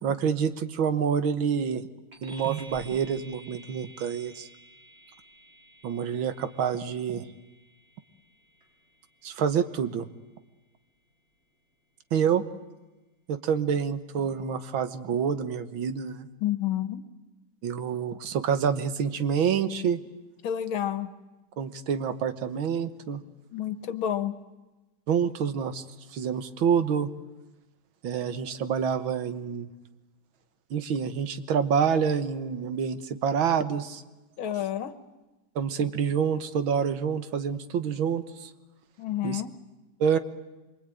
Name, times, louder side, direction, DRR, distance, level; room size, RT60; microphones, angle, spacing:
voice 1, 0.0-1.8 2.2-4.5 5.8-7.3 9.2-10.1 12.1-12.4 13.3-16.3 17.6-20.0 21.6-23.2 25.1-25.8 26.1-27.1 28.0-29.7 30.7-34.0 35.6-38.5 39.2-39.4 40.0-40.2, right 7 dB, 75° right, 11 dB, 2.0 m, -27 dB
sound 1, 2.1-11.9, right 1 dB, 30° right, 5.0 m, -53 dB
voice 2, 16.4-17.0 20.4-21.1 23.5-24.4 34.4-34.9 39.0-39.5, left 11 dB, 80° left, 12 dB, 2.1 m, -29 dB
25.5 x 24.0 x 9.1 m, 1.1 s
omnidirectional pair, 2.2 m